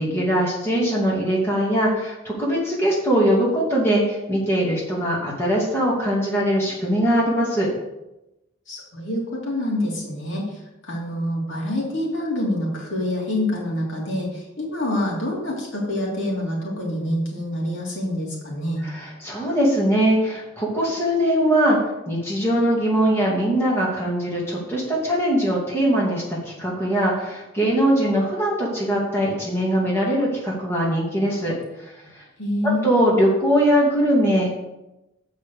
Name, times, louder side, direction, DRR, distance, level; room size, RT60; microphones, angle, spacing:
voice 1, 0.0-7.7 18.8-21.8 22.1-32.2 32.8-34.5, equal, 10° left, -5 dB, 2.4 m, -21 dB
voice 2, 8.7-18.8 32.4-32.9, left 1 dB, 70° left, -3 dB, 2.9 m, -26 dB
7.7 x 5.5 x 6.8 m, 0.96 s
head